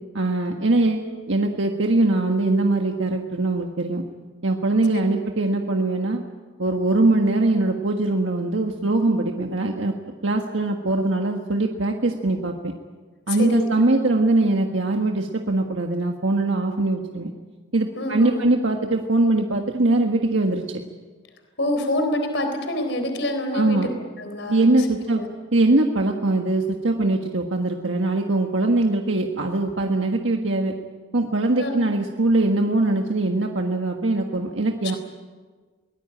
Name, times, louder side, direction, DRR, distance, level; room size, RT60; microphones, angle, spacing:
voice 1, 0.1-4.0 4.4-6.2 6.6-9.9 10.2-12.7 13.3-17.3 17.7-20.6 23.5-23.9 24.5-25.2 25.5-30.7 31.1-35.0, right 2 dB, 85° right, 2 dB, 1.6 m, -22 dB
voice 2, 13.3-13.7 18.0-18.5 21.6-23.8 24.2-25.3 31.6-31.8, left 1 dB, 70° left, 6 dB, 3.9 m, -27 dB
23.5 x 19.0 x 8.9 m, 1.4 s
head